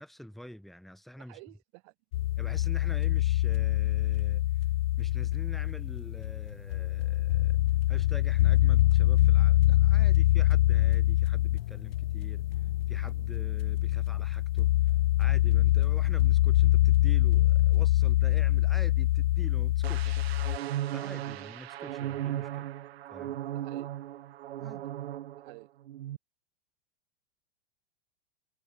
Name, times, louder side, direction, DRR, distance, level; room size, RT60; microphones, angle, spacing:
voice 1, 0.0-1.4 2.4-4.5 5.0-7.6 7.9-12.4 12.9-14.7 15.2-20.2 20.9-22.7 23.1-23.4 24.6-24.9, equal, ahead, 3.1 m, -46 dB
voice 2, 1.2-1.9 23.5-23.9 25.4-25.7, right 32 dB, 50° right, 6.7 m, -51 dB
sound 1, 2.1-20.6, left 15 dB, 65° left, 1.0 m, -25 dB
sound 2, 19.8-25.6 25.9-26.2, right 13 dB, 80° right, 0.8 m, -37 dB
hypercardioid pair, 125°, 31 cm